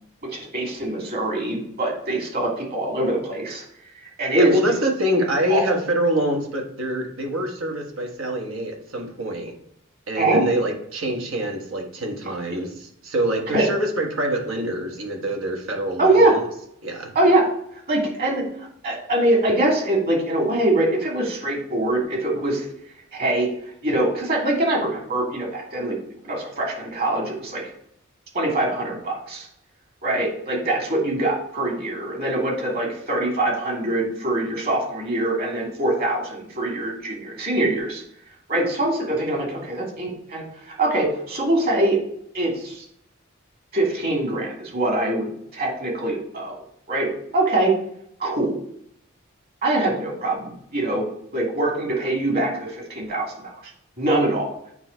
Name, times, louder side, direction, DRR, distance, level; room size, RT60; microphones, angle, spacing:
voice 1, 0.3-3.6 4.2-4.5 5.5-5.8 10.2-10.4 13.5-13.7 16.0-16.3 17.1-17.5 17.9-18.5 18.8-22.7 23.1-23.5 23.8-26.0 26.2-27.6 28.3-29.5 30.0-38.0 38.5-42.0 42.3-42.8 43.7-46.6 46.9-47.7 48.2-48.6 49.6-51.0 51.3-53.5 54.0-54.5, right 1 dB, 50° right, -1 dB, 2.5 m, -23 dB
voice 2, 4.3-9.5 10.1-16.4 16.8-17.1, right 1 dB, 80° right, 2 dB, 1.5 m, -25 dB
8.9 x 3.3 x 4.5 m, 0.71 s
head